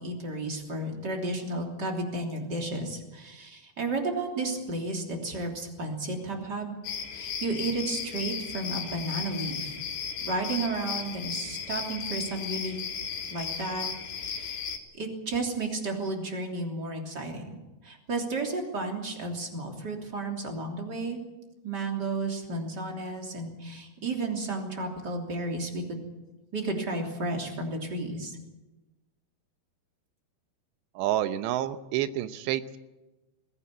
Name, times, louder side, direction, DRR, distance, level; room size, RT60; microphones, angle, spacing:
voice 1, 0.0-6.7 7.1-9.7 10.2-12.8 13.3-13.9 14.1-14.6 14.9-21.2 21.6-26.0 26.5-28.4, right 2 dB, 25° right, 2 dB, 3.2 m, -33 dB
sound 1, 6.8-14.8, left 6 dB, 75° left, 4.1 m, -35 dB
voice 2, 31.0-32.8, right 12 dB, 90° right, 11 dB, 3.2 m, -29 dB
21.0 x 17.0 x 8.6 m, 1.1 s
omnidirectional pair, 4.9 m